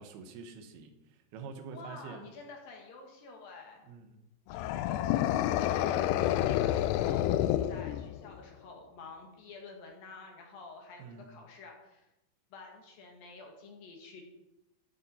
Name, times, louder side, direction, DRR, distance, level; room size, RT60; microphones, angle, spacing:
voice 1, 0.0-2.3 3.8-4.2 11.0-11.3, right 5 dB, 70° right, 6 dB, 2.8 m, -46 dB
voice 2, 1.7-3.8 4.5-12.1 12.5-14.2, left 3 dB, 60° left, 2 dB, 3.0 m, -49 dB
sound 1, 4.5-8.4, left 12 dB, 85° left, 2.4 m, -29 dB
14.5 x 7.6 x 4.3 m, 0.94 s
omnidirectional pair, 5.1 m